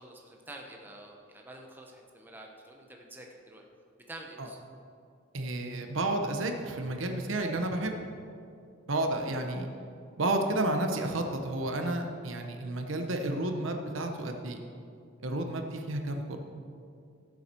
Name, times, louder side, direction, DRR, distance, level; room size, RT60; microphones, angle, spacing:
voice 1, 0.0-3.6 4.1-4.6 9.1-9.3, right 1 dB, 10° right, 0 dB, 1.0 m, -48 dB
voice 2, 5.3-8.0 8.9-9.7 10.2-14.6 15.2-16.4, right 2 dB, 80° right, 4 dB, 1.1 m, -31 dB
16.5 x 7.2 x 4.6 m, 2.4 s
head